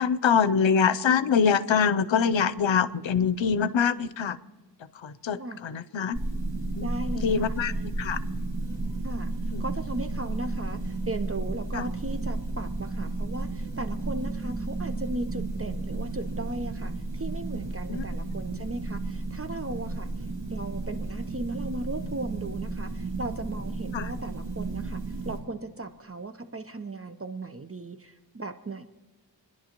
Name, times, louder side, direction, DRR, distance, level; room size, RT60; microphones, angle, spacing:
voice 1, 0.0-4.4 5.0-6.2 6.7-8.2 9.5-9.6 11.7-11.8 17.9-18.0 23.9-24.1, left 6 dB, 85° left, 15 dB, 0.7 m, -24 dB
sound 1, 6.1-25.4, right 2 dB, 65° right, 3.0 m, -33 dB
voice 2, 6.8-7.6 9.0-9.3 9.6-20.1 20.5-28.8, right 2 dB, 30° right, 8 dB, 0.7 m, -36 dB
28.0 x 11.0 x 3.0 m, 1.3 s
wide cardioid pair, 70°, 45 cm